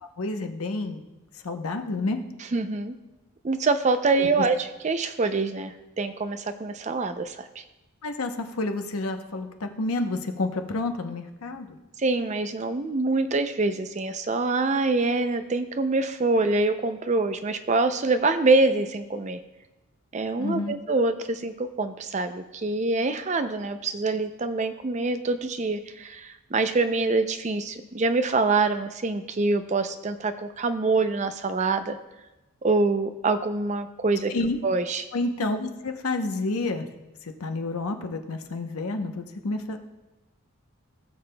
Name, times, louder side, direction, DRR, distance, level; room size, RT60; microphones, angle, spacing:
voice 1, 0.0-1.0 1.3-2.2 4.2-4.5 8.0-11.8 20.4-20.7 34.3-34.6 35.1-36.9 37.2-39.8, left 2 dB, 80° left, 5 dB, 0.8 m, -29 dB
voice 2, 2.5-2.9 3.4-7.6 12.0-19.4 20.1-32.0 32.6-34.3 34.6-35.0, right 3 dB, 30° right, 9 dB, 0.4 m, -25 dB
17.5 x 7.0 x 2.2 m, 1.0 s
head